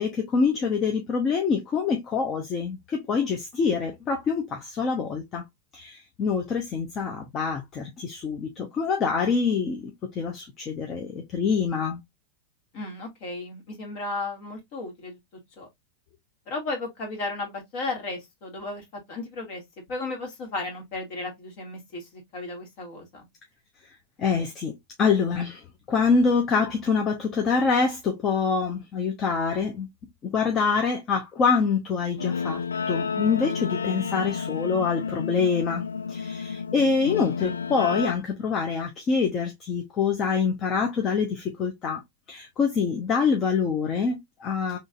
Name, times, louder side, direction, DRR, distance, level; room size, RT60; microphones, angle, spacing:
voice 1, 0.0-5.4 5.7-12.0 24.2-24.7 25.0-25.6 25.9-29.9 30.2-32.6 32.9-35.8 36.1-42.0 42.3-44.8, left 5 dB, 30° left, 0.8 m, -25 dB
voice 2, 12.7-15.2 15.6-15.7 16.5-19.6 19.9-23.3, left 2 dB, 45° left, 2.1 m, -34 dB
Guitar, 32.2-38.1, left 6 dB, 70° left, 0.4 m, -31 dB
3.9 x 3.2 x 2.4 m
figure-of-eight pair, 90°, 0 cm